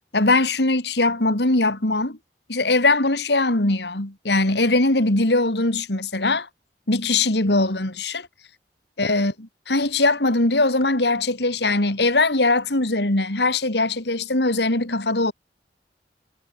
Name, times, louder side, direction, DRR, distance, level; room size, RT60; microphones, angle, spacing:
voice 1, 0.1-2.2 2.5-6.5 6.9-8.3 9.0-15.3, left 2 dB, 75° left, 2.9 m, -21 dB
head